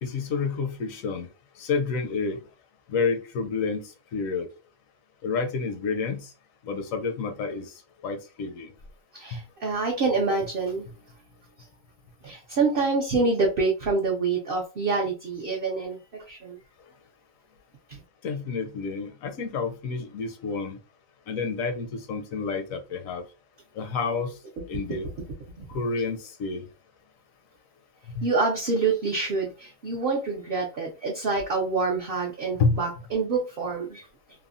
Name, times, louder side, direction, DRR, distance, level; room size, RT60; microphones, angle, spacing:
voice 1, 0.0-1.3 1.6-2.4 2.9-4.5 5.2-6.3 6.6-7.7 8.0-8.7 9.3-9.4 18.2-20.8 21.3-23.2 23.8-24.3 24.7-25.1 25.7-26.7 28.1-28.3 32.6-32.8, left 4 dB, 75° left, 7 dB, 1.0 m, -29 dB
voice 2, 9.1-10.8 12.2-16.6 17.9-18.0 25.6-25.7 28.2-34.1, right 4 dB, 55° right, 0 dB, 0.6 m, -26 dB
3.3 x 2.1 x 2.4 m, 0.31 s
omnidirectional pair, 1.5 m